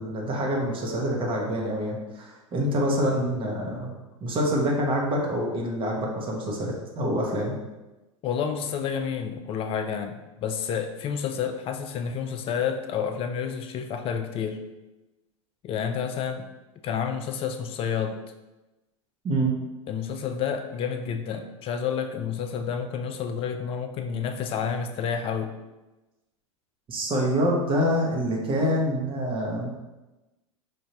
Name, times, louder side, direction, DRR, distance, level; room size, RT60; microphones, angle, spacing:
voice 1, 0.0-3.9 4.2-7.5 19.2-19.5 26.9-29.7, equal, 30° right, -1 dB, 1.1 m, -26 dB
voice 2, 8.2-14.6 15.6-16.5 16.8-18.2 19.9-25.5, left 7 dB, 35° left, 7 dB, 0.5 m, -29 dB
5.1 x 2.7 x 2.9 m, 1.1 s
hypercardioid pair, 95°, 17 cm